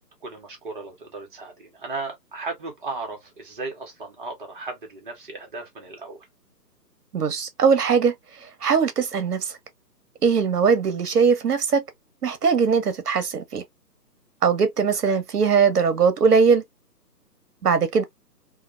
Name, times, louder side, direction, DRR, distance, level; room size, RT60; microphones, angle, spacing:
voice 1, 0.2-6.2 15.1-15.2, right 3 dB, 30° right, 0.9 m, -36 dB
voice 2, 7.1-8.1 8.6-9.5 10.2-11.8 12.2-13.6 14.4-16.6 17.6-18.0, right 5 dB, 65° right, 0.8 m, -20 dB
2.8 x 2.1 x 2.3 m
figure-of-eight pair, 145°, 49 cm